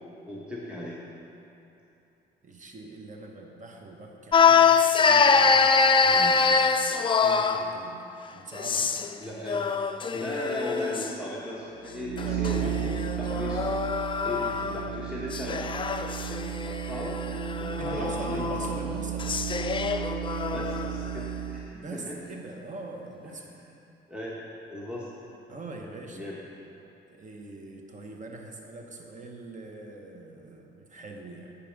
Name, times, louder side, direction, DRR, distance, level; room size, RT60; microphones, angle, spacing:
voice 1, 0.3-1.0 6.1-6.3 9.2-9.6 10.1-12.8 13.2-13.6 14.2-15.6 16.4-17.2 17.5-18.4 20.5-22.2 23.5-23.8 24.1-24.4 24.7-25.1 26.1-26.4, left 1 dB, 5° right, -6 dB, 1.1 m, -37 dB
voice 2, 2.4-4.7 5.0-6.8 7.2-9.1 12.2-13.1 17.8-19.3 21.7-23.5 25.5-26.3 27.1-31.5, right 2 dB, 40° right, 2 dB, 1.1 m, -42 dB
sound 1, 4.3-7.7 8.5-9.2 9.5-11.1 12.2-14.9 15.3-20.9, left 5 dB, 25° left, 0.3 m, -24 dB
sound 2, 11.9-21.8, right 10 dB, 70° right, 0.5 m, -34 dB
8.3 x 5.5 x 5.2 m, 2.9 s
cardioid pair, 90°, 20 cm